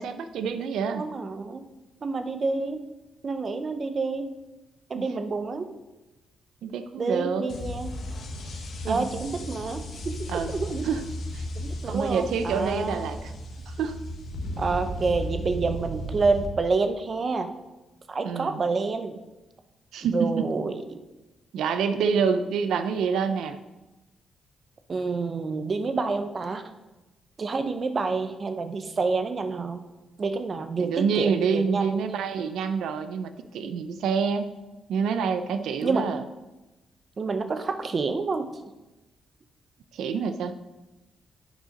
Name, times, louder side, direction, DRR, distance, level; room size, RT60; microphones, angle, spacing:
voice 1, 0.0-1.1 5.0-5.1 6.6-7.5 8.9-9.2 10.3-10.6 10.8-11.0 11.3-11.5 11.8-13.3 13.7-14.0 18.2-18.6 19.9-20.5 21.5-23.6 30.8-34.5 34.9-36.2 39.9-40.5, right 6 dB, 80° right, 9 dB, 0.6 m, -27 dB
voice 2, 1.0-1.6 2.0-2.9 3.2-4.3 4.9-5.7 7.0-7.9 8.8-10.9 11.6-13.1 14.6-17.5 18.1-19.2 20.1-21.0 24.9-26.6 27.4-29.8 30.2-32.1 35.8-36.1 37.2-38.5, right 4 dB, 30° right, 8 dB, 0.6 m, -28 dB
sound 1, 7.5-16.5, equal, 50° left, 1.2 m, -35 dB
9.2 x 6.4 x 5.2 m, 1.1 s
cardioid pair, 175°, 0 cm